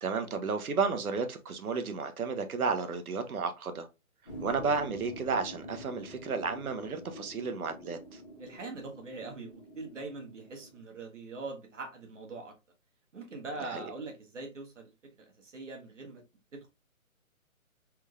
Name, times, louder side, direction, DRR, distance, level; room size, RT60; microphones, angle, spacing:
voice 1, 0.0-3.9 4.4-8.2 13.6-13.8, right 5 dB, 90° right, 0.9 m, -32 dB
sound 1, 4.2-10.8, equal, 30° left, 0.9 m, -46 dB
voice 2, 8.4-12.5 13.1-14.9 15.2-16.2 16.5-16.7, right 3 dB, 60° right, 1.2 m, -42 dB
3.5 x 3.2 x 2.3 m
hypercardioid pair, 180°, 42 cm